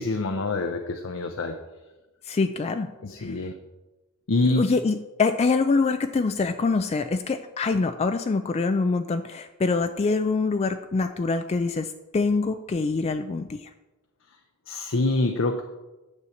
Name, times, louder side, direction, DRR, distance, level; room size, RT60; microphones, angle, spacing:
voice 1, 0.0-1.6 3.0-3.5 4.3-4.7 14.7-15.6, left 2 dB, 65° left, 6 dB, 0.6 m, -25 dB
voice 2, 2.2-2.9 3.2-3.4 4.6-13.7, left 4 dB, 30° left, 9 dB, 0.3 m, -25 dB
9.6 x 4.5 x 7.0 m, 1.1 s
head